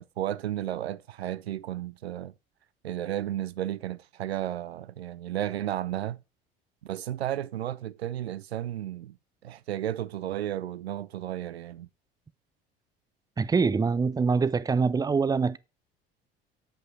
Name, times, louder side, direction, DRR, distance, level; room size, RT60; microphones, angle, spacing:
voice 1, 0.0-2.3 2.8-6.2 6.8-9.2 9.4-11.9, right 12 dB, 85° right, 0.5 m, -33 dB
voice 2, 13.4-15.6, right 5 dB, 15° right, 0.5 m, -24 dB
7.5 x 5.5 x 4.3 m
figure-of-eight pair, 65°, 31 cm